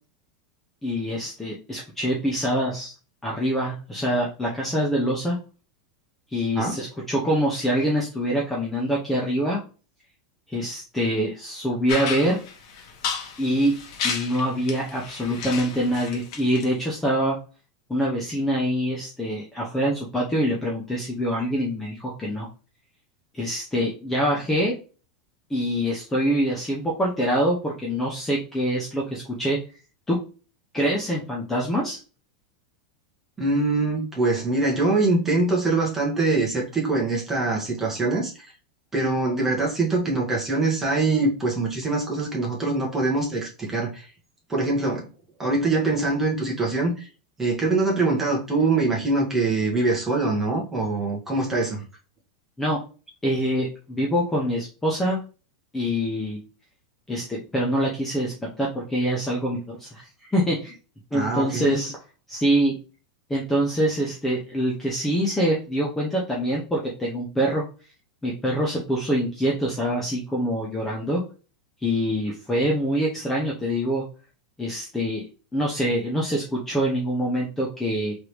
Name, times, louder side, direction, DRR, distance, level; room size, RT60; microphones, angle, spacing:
voice 1, 0.8-2.9 3.2-5.4 6.3-9.6 10.5-12.4 13.4-13.7 14.0-17.4 17.9-22.5 23.3-24.7 25.5-29.6 30.1-30.2 30.7-32.0 52.6-52.8 53.2-55.2 55.7-56.4 57.1-60.7 61.1-61.9 62.3-62.7 63.3-67.6 68.2-71.2 71.8-74.0 74.6-75.2 75.5-78.1, equal, 5° left, 0.8 m, -25 dB
sound 1, 11.9-16.6, left 6 dB, 55° left, 1.1 m, -32 dB
voice 2, 33.4-38.3 38.9-44.1 44.5-45.1 45.4-47.1 47.4-51.8 61.1-61.8, right 3 dB, 10° right, 1.4 m, -23 dB
3.7 x 3.4 x 3.1 m
supercardioid pair, 160°, 4 cm